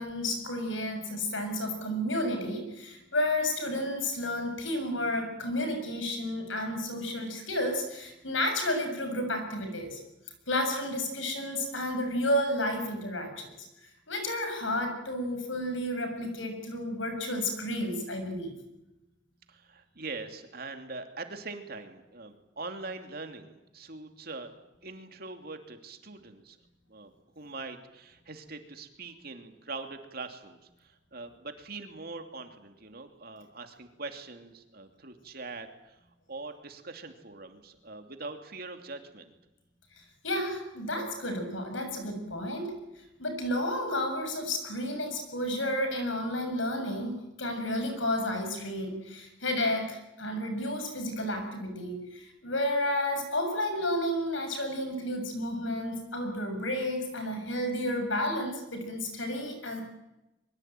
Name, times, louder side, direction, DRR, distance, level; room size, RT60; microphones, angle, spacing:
voice 1, 0.0-10.0 10.5-13.5 14.1-18.6 40.2-59.8, left 1 dB, 80° left, 6 dB, 7.1 m, -31 dB
voice 2, 19.5-24.5 24.8-26.6 26.9-27.1 27.4-36.0 36.3-39.3, right 3 dB, 50° right, 6 dB, 2.8 m, -42 dB
23.0 x 23.0 x 9.2 m, 0.95 s
head